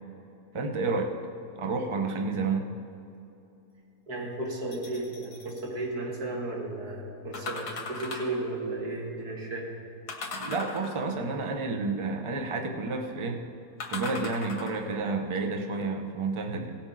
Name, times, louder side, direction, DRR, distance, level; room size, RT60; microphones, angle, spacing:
voice 1, 0.5-1.1 1.5-2.7 10.3-13.4 13.9-16.7, right 3 dB, 30° right, 3 dB, 0.6 m, -30 dB
voice 2, 4.1-9.7, right 2 dB, 80° right, -2 dB, 2.4 m, -34 dB
sound 1, 4.7-5.7 7.3-8.4 10.1-11.2 13.8-15.0 15.6-15.7, left 3 dB, 80° left, 1.9 m, -38 dB
17.0 x 7.9 x 4.0 m, 2.8 s
omnidirectional pair, 1.7 m